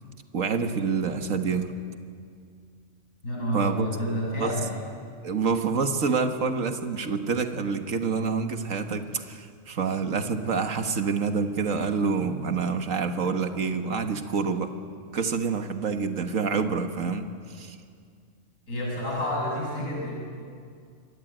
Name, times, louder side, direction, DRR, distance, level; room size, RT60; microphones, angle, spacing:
voice 1, 0.3-1.7 3.5-3.9 4.4-4.5 5.2-14.7 15.1-17.8, right 5 dB, 80° right, 6 dB, 1.9 m, -27 dB
voice 2, 3.2-4.7 18.7-20.1, equal, 90° left, -4 dB, 6.7 m, -29 dB
27.5 x 22.0 x 9.1 m, 2.2 s
omnidirectional pair, 1.4 m